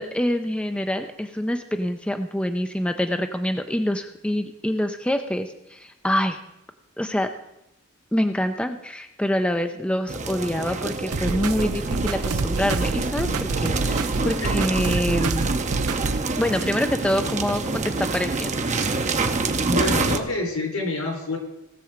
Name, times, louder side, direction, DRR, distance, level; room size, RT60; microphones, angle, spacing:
voice 1, 0.0-6.4 7.0-7.3 8.1-15.5 16.4-18.5, left 1 dB, 5° left, 7 dB, 0.5 m, -26 dB
sound 1, 10.1-20.2, right 3 dB, 35° right, 0.8 m, -27 dB
sound 2, 11.1-16.2, right 3 dB, 75° right, 0.7 m, -27 dB
voice 2, 19.6-21.4, left 2 dB, 75° left, 1 dB, 4.3 m, -27 dB
18.0 x 6.9 x 5.0 m, 0.91 s
head